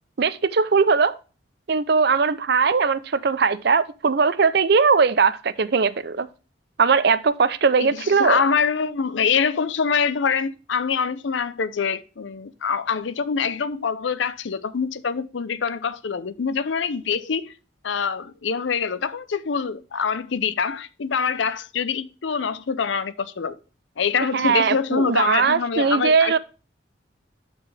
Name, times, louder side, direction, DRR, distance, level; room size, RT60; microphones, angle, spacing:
voice 1, 0.2-1.2 1.7-6.3 6.8-8.4 24.3-26.4, right 5 dB, 55° right, 0.5 m, -20 dB
voice 2, 7.8-17.5 17.8-23.6 24.0-26.4, left 6 dB, 70° left, 0.6 m, -25 dB
10.5 x 4.6 x 3.3 m
head